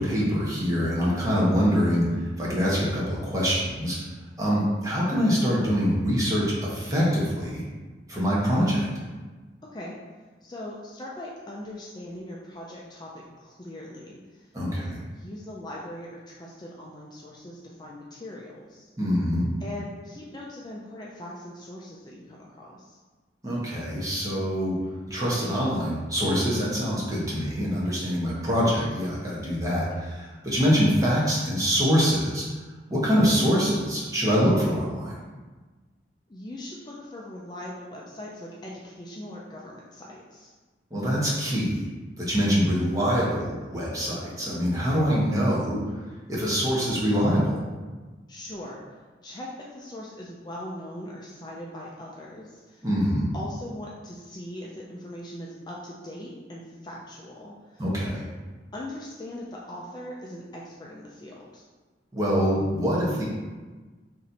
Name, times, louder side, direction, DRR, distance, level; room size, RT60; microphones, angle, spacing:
voice 1, 0.0-2.0 2.4-4.0 4.4-7.6 8.1-8.9 14.5-15.0 19.0-19.5 23.4-24.8 25.1-32.4 32.9-35.2 40.9-41.8 42.3-45.8 46.3-47.6 52.8-53.3 57.8-58.2 62.1-63.2, equal, 20° right, -6 dB, 1.2 m, -24 dB
voice 2, 9.6-10.0 10.4-14.5 15.0-18.9 19.6-23.0 36.3-40.5 48.3-48.8 49.2-52.9 53.3-57.9 58.7-61.7, left 1 dB, 25° left, -4 dB, 0.5 m, -40 dB
4.3 x 3.1 x 4.0 m, 1.3 s
head